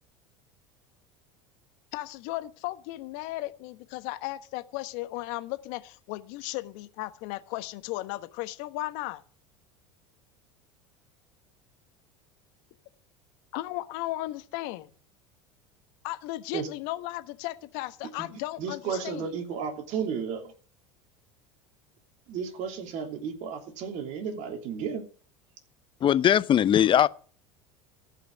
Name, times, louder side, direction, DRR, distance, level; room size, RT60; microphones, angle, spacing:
voice 1, 1.9-9.2 13.5-14.9 16.0-19.3, left 17 dB, 65° left, 1.2 m, -35 dB
voice 2, 18.6-20.5 22.3-25.0, right 6 dB, 55° right, 3.1 m, -33 dB
voice 3, 26.0-27.1, left 10 dB, 35° left, 0.7 m, -20 dB
15.0 x 5.8 x 9.5 m
hypercardioid pair, 85°, 15 cm